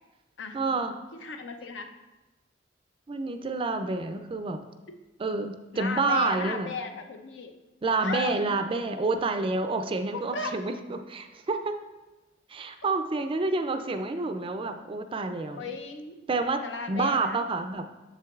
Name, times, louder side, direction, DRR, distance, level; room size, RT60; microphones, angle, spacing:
voice 1, 0.5-0.9 3.1-4.6 5.2-6.7 7.8-11.8 12.5-15.6 16.3-17.9, right 3 dB, 30° right, 8 dB, 0.4 m, -28 dB
voice 2, 1.1-1.9 5.7-7.5 8.0-8.4 10.1-10.6 15.6-16.2 16.6-17.4, left 4 dB, 70° left, 6 dB, 0.6 m, -35 dB
7.6 x 6.9 x 2.4 m, 1.1 s
head